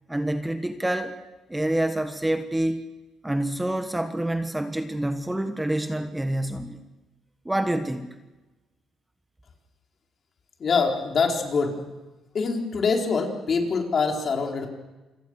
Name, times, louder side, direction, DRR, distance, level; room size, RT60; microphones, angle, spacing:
voice 1, 0.1-1.1 1.5-2.8 3.2-6.8 7.4-8.1, right 1 dB, 10° right, 7 dB, 1.5 m, -27 dB
voice 2, 10.6-11.8 12.3-14.7, left 4 dB, 45° left, 2 dB, 4.4 m, -24 dB
28.0 x 22.5 x 6.5 m, 1.1 s
cardioid pair, 100°, 0 cm